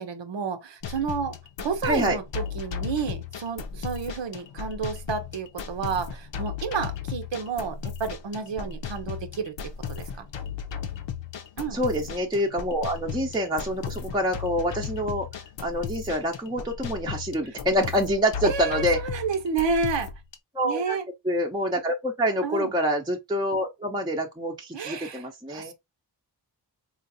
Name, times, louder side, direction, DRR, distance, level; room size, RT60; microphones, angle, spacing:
voice 1, 0.0-10.3 11.6-11.8 18.4-20.1 20.6-21.0 22.4-22.7 24.7-25.7, right 5 dB, 85° right, 0.8 m, -30 dB
sound 1, 0.8-20.4, left 7 dB, 85° left, 0.7 m, -36 dB
voice 2, 1.8-2.2 11.7-15.3 15.6-19.0 20.5-21.0 21.2-25.7, equal, 10° right, 0.5 m, -26 dB
3.9 x 2.5 x 2.6 m
wide cardioid pair, 75°, 43 cm